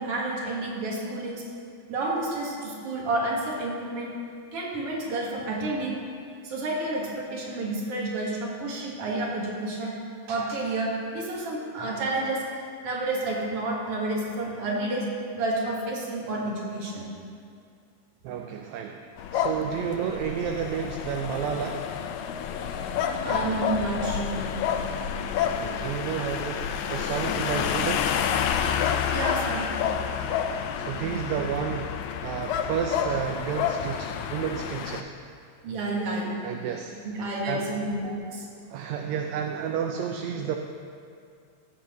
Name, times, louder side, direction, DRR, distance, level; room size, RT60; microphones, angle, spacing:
voice 1, 0.0-1.4 1.9-4.1 4.5-6.0 6.4-9.9 10.3-12.4 12.8-15.1 15.3-17.1 19.3-19.4 23.2-24.6 29.1-30.3 31.0-31.2 35.6-36.5 37.0-38.4, right 2 dB, 55° right, -3 dB, 2.4 m, -30 dB
voice 2, 18.2-19.0 19.3-21.9 25.4-28.1 30.8-31.9 32.2-35.1 36.4-36.9 37.5-37.7 38.7-40.6, right 8 dB, 80° right, 4 dB, 1.8 m, -31 dB
sound 1, 19.2-35.0, left 8 dB, 80° left, 1.8 m, -29 dB
17.0 x 7.4 x 3.0 m, 2.4 s
omnidirectional pair, 3.3 m